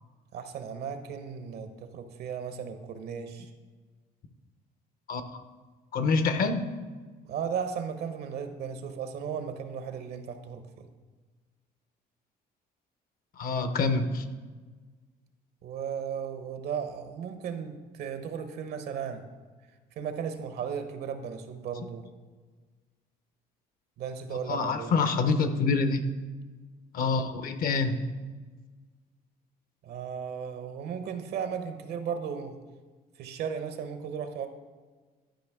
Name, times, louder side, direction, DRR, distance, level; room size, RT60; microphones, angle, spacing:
voice 1, 0.3-3.5 7.3-10.9 15.6-19.2 20.0-22.1 24.0-24.9 29.8-32.6 33.2-34.5, right 7 dB, 70° right, 8 dB, 0.9 m, -35 dB
voice 2, 5.9-6.7 13.4-14.2 24.5-26.0 26.9-27.9, left 4 dB, 60° left, 9 dB, 0.8 m, -26 dB
11.5 x 5.2 x 3.5 m, 1.4 s
cardioid pair, 110°, 17 cm